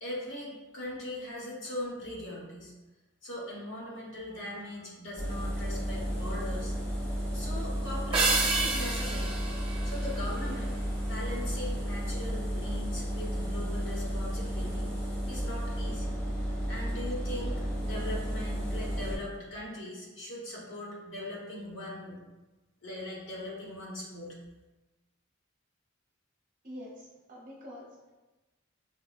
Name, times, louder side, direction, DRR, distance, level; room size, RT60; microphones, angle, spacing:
voice 1, 0.0-2.7 3.2-6.7 7.3-9.3 9.8-10.7 11.1-14.9 15.3-16.1 16.7-22.2 22.8-24.3, left 1 dB, 65° left, -5 dB, 1.1 m, -40 dB
Engine, 5.2-19.2, equal, 10° left, 0.9 m, -33 dB
sound 1, 8.1-10.8, right 3 dB, 25° right, 0.5 m, -30 dB
voice 2, 26.6-28.1, equal, 40° right, -4 dB, 0.9 m, -46 dB
5.4 x 2.1 x 2.4 m, 1.1 s
head